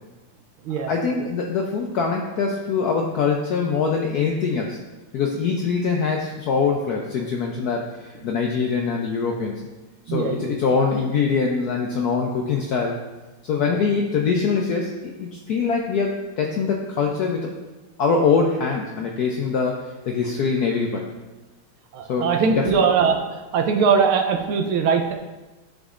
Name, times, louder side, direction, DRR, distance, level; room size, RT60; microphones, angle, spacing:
voice 1, 0.9-4.8 5.1-9.5 10.1-13.0 13.5-17.5 18.0-19.8 20.0-21.0 22.1-22.6, left 5 dB, 80° left, 0 dB, 0.8 m, -23 dB
voice 2, 10.1-10.5 13.7-13.8 21.9-23.2 23.5-25.2, right 6 dB, 90° right, 4 dB, 1.5 m, -20 dB
10.0 x 5.1 x 2.4 m, 1.1 s
omnidirectional pair, 2.3 m